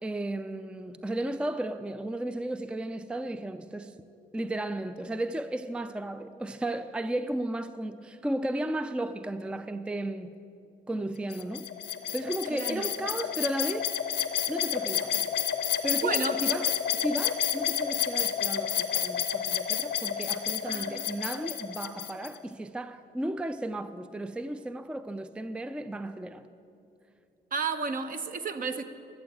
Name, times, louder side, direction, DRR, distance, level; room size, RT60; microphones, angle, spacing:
voice 1, 0.0-4.0 4.3-10.4 10.9-11.7 12.1-13.9 14.5-15.3 15.8-26.5, right 1 dB, 5° right, 0.4 m, -34 dB
sound 1, 11.3-22.3, left 9 dB, 85° left, 0.8 m, -30 dB
voice 2, 12.5-12.9 16.0-16.4 20.6-21.0 27.5-28.8, right 5 dB, 50° right, 0.9 m, -32 dB
13.0 x 6.9 x 9.1 m
cardioid pair, 70°, 18 cm